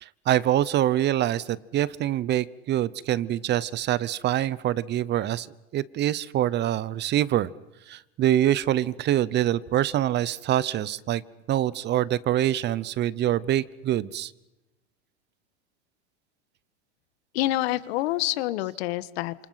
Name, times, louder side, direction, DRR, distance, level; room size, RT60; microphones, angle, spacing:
voice 1, 0.0-5.5 5.7-7.5 7.9-11.2 11.5-14.3, right 12 dB, 30° right, 20 dB, 0.9 m, -25 dB
voice 2, 17.3-19.3, left 16 dB, 65° left, 16 dB, 1.5 m, -27 dB
29.5 x 28.0 x 5.8 m, 1.0 s
supercardioid pair, 130°, 34 cm